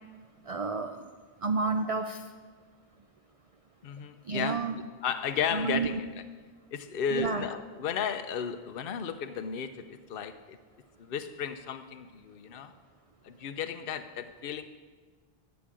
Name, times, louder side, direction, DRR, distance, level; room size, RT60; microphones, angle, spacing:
voice 1, 0.5-1.0 1.4-2.2 4.3-4.8 5.5-5.9 7.1-7.5, right 4 dB, 40° right, 6 dB, 0.6 m, -30 dB
voice 2, 3.8-4.6 5.0-6.0 6.7-10.6 11.0-12.7 13.2-14.6, left 7 dB, 65° left, 8 dB, 0.9 m, -34 dB
12.5 x 8.4 x 7.5 m, 1.5 s
omnidirectional pair, 1.0 m